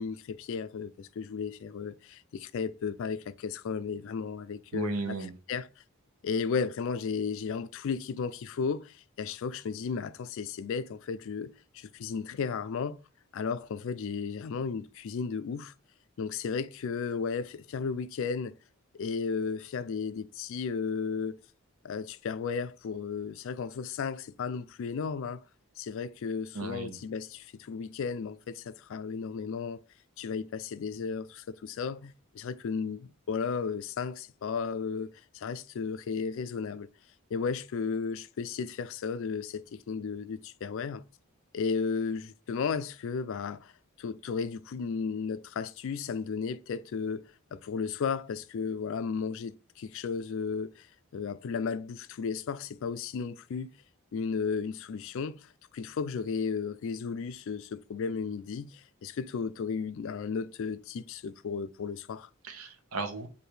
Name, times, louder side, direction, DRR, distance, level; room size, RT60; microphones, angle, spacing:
voice 1, 0.0-5.7 6.2-13.0 13.3-15.7 16.2-18.6 18.9-21.4 21.8-25.4 25.8-29.8 30.2-36.9 37.3-41.0 41.5-43.7 44.0-50.9 51.1-53.7 54.1-62.3, left 5 dB, 65° left, 0.3 m, -34 dB
voice 2, 4.7-5.3 26.5-27.0 62.4-63.3, right 3 dB, 90° right, 0.8 m, -35 dB
3.3 x 2.7 x 4.4 m
head